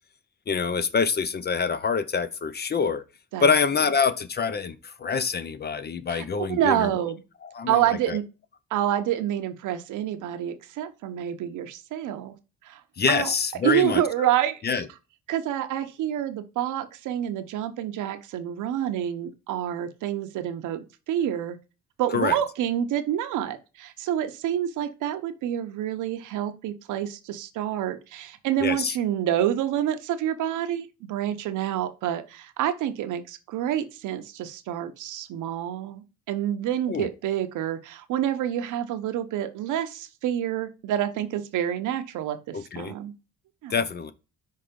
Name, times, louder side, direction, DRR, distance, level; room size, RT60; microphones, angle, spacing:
voice 1, 0.5-3.0 3.4-7.0 7.4-8.2 13.0-14.3 14.6-14.9 22.1-22.4 28.6-29.0 36.9-37.1 42.5-42.9 43.7-44.1, left 5 dB, 35° left, 0.7 m, -26 dB
voice 2, 6.1-7.2 7.7-8.2 8.7-12.3 12.7-12.8 13.1-13.3 13.6-14.8 15.3-21.6 22.0-43.1 43.6-43.8, right 11 dB, 85° right, 0.9 m, -28 dB
5.7 x 3.4 x 5.1 m
cardioid pair, 90°, 30 cm